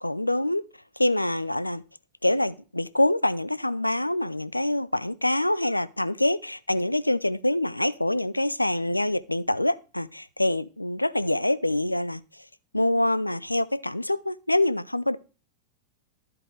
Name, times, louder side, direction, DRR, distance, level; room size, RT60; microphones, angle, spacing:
voice 1, 0.0-0.6 1.0-1.8 2.2-12.2 12.7-15.2, left 1 dB, 85° left, 0.4 m, -25 dB
13.5 x 4.8 x 3.3 m
figure-of-eight pair, 90°, 0 cm